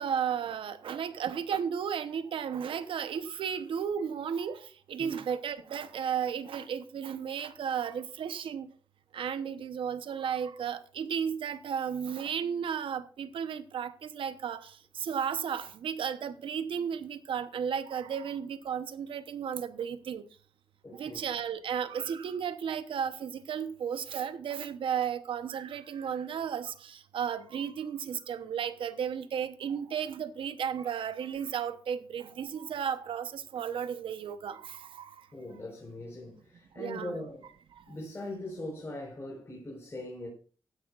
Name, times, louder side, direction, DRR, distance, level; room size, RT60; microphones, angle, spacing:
voice 1, 0.0-4.6 4.9-8.7 9.1-14.6 15.0-20.2 20.9-35.1 36.8-37.2, right 7 dB, 85° right, 0.9 m, -34 dB
voice 2, 20.8-21.2 35.3-37.5 37.9-40.3, left 1 dB, 30° left, 4.5 m, -41 dB
15.5 x 11.0 x 2.5 m
wide cardioid pair, 115°, 9 cm